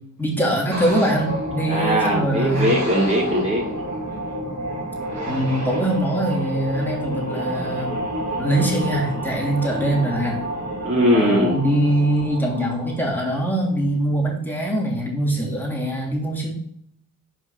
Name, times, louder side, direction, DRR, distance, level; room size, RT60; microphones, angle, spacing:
voice 1, 0.2-2.7 5.3-8.0 8.4-10.4 11.1-16.6, right 1 dB, 5° left, -4 dB, 3.1 m, -23 dB
sound 1, 0.7-13.7, right 1 dB, 45° right, 2.7 m, -29 dB
voice 2, 1.7-3.8 10.8-11.6, equal, 30° right, -7 dB, 2.9 m, -20 dB
6.1 x 5.1 x 4.1 m, 0.67 s
cardioid pair, 55°, 36 cm